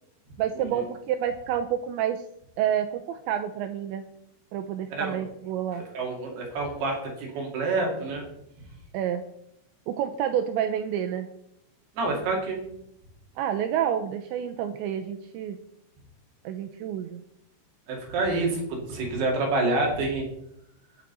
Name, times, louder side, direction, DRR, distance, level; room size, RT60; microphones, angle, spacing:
voice 1, 0.4-2.2 2.6-4.1 4.5-5.9 8.9-9.2 9.9-11.3 13.4-15.6 16.4-17.2, right 9 dB, 90° right, 6 dB, 2.6 m, -29 dB
voice 2, 4.9-5.2 5.7-8.2 12.0-12.6 17.9-20.3, right 2 dB, 55° right, -1 dB, 4.0 m, -28 dB
21.5 x 7.4 x 4.1 m, 0.79 s
omnidirectional pair, 5.8 m